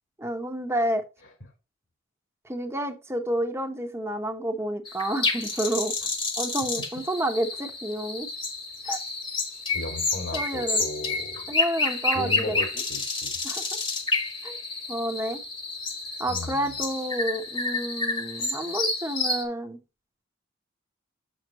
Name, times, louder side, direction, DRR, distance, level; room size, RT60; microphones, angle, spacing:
voice 1, 0.2-1.0 2.4-5.9 6.4-8.3 8.8-9.0 10.3-10.8 11.5-12.6 13.4-13.6 14.4-14.6 14.9-15.4 16.2-19.8, right 1 dB, 15° right, 5 dB, 1.0 m, -29 dB
sound 1, 4.9-19.4, left 3 dB, 25° left, 1.3 m, -29 dB
voice 2, 9.5-11.5 12.1-13.4 16.3-16.7, left 2 dB, 65° left, 4 dB, 2.4 m, -36 dB
7.3 x 6.1 x 3.0 m, 0.26 s
head